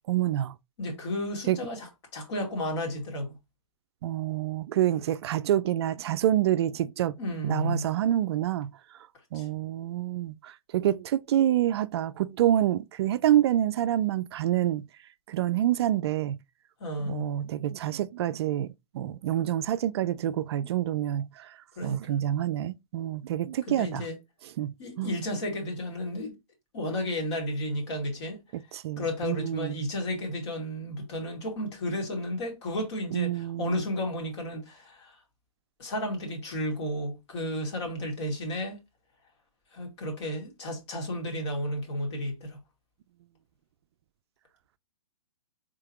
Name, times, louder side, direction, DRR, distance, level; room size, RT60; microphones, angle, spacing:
voice 1, 0.1-0.5 1.5-1.6 4.0-7.2 7.4-8.7 9.3-14.8 15.3-16.4 17.0-21.5 21.8-24.0 24.6-25.1 28.7-29.8 33.1-33.8, right 12 dB, 50° right, 0.4 m, -27 dB
voice 2, 0.8-3.4 7.2-7.9 9.3-9.5 16.8-17.3 21.8-22.1 23.7-24.2 24.8-26.4 26.7-28.4 29.0-35.2 35.8-38.8 39.7-42.6, left 1 dB, 55° left, 2.3 m, -33 dB
4.7 x 3.7 x 3.0 m
hypercardioid pair, 120°, 18 cm